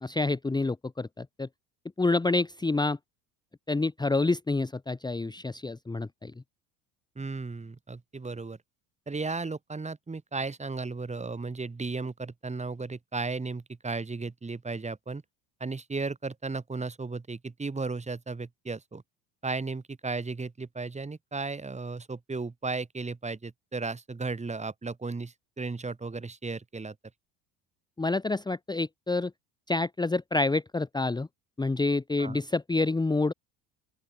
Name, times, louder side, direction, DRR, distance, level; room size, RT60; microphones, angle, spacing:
voice 1, 0.0-1.5 2.0-3.0 3.7-6.3 28.0-29.3 29.7-31.3 31.6-33.3, left 3 dB, 10° left, 1.2 m, -28 dB
voice 2, 7.2-8.6 9.1-15.2 15.6-19.0 19.4-26.9 32.2-32.4, right 3 dB, 15° right, 2.7 m, -35 dB
open air
hypercardioid pair, 75°, 40 cm